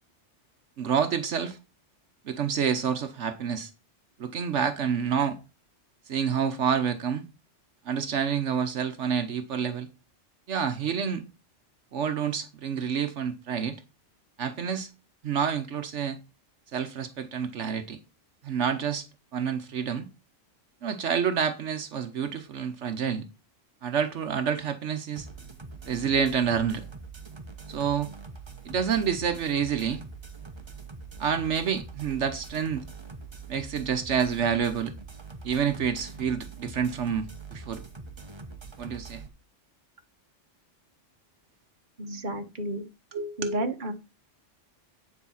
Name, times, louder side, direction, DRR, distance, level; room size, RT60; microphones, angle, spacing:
voice 1, 0.8-1.6 2.2-3.7 4.2-5.4 6.1-7.2 7.8-9.9 10.5-11.2 11.9-13.8 14.4-14.9 15.2-16.2 16.7-18.0 18.4-19.1 19.3-20.1 20.8-23.3 23.8-25.3 25.9-26.8 27.7-28.1 28.6-30.0 31.2-32.8 33.5-34.9 35.4-37.8 38.8-39.2 43.1-43.6, right 7 dB, 75° right, 1.2 m, -28 dB
sound 1, 25.2-39.3, right 4 dB, 25° right, 1.1 m, -43 dB
voice 2, 42.0-42.8 43.4-43.9, right 1 dB, 40° right, 1.4 m, -31 dB
9.8 x 4.7 x 5.7 m
omnidirectional pair, 1.3 m